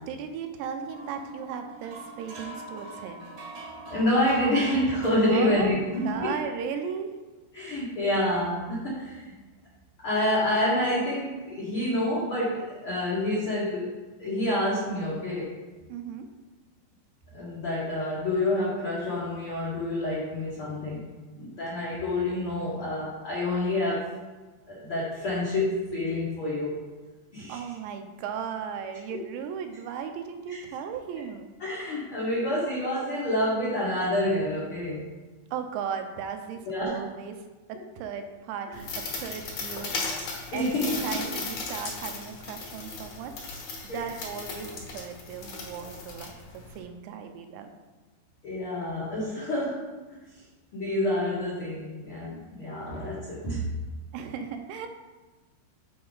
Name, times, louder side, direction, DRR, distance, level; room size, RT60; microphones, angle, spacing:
voice 1, 0.1-3.3 5.3-5.8 6.0-7.1 15.9-16.3 27.5-31.5 35.5-37.3 37.7-38.9 39.2-39.9 40.5-40.7 41.0-43.4 43.8-47.7 54.1-54.9, right 7 dB, 85° right, 6 dB, 2.9 m, -36 dB
sound 1, 0.9-6.1, right 2 dB, 70° right, 1.7 m, -42 dB
voice 2, 3.9-6.3 7.5-9.4 10.0-13.9 14.2-15.6 17.3-21.1 21.4-24.1 24.7-26.9 27.3-27.6 30.5-30.6 31.6-35.1 36.6-37.0 40.5-41.2 43.9-44.0 48.4-49.9 50.7-53.7, left 1 dB, 85° left, -8 dB, 1.1 m, -28 dB
sound 2, 38.7-46.8, left 3 dB, 60° left, 2.0 m, -36 dB
7.6 x 4.7 x 3.9 m, 1.2 s
omnidirectional pair, 5.0 m